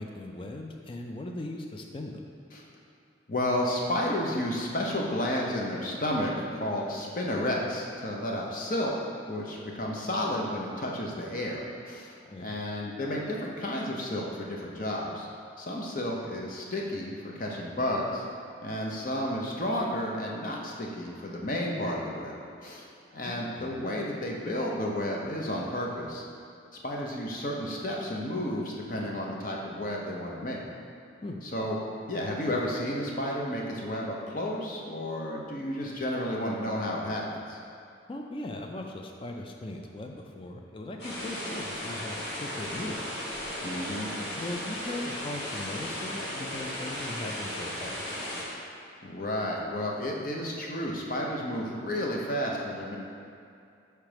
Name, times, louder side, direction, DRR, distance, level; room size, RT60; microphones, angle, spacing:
voice 1, 0.0-2.3 12.2-12.5 23.2-23.8 31.2-31.4 38.1-43.1 44.4-48.2, left 1 dB, 30° left, 2 dB, 0.4 m, -39 dB
voice 2, 3.3-8.9 9.3-12.1 12.4-15.3 15.6-18.2 18.6-22.9 23.1-26.2 26.8-30.6 31.5-31.8 32.1-37.6 43.6-44.1 49.0-53.0, left 1 dB, 45° left, -2 dB, 0.8 m, -32 dB
sound 1, 41.0-48.4, left 1 dB, 60° left, 1.3 m, -36 dB
6.0 x 3.3 x 5.0 m, 2.5 s
head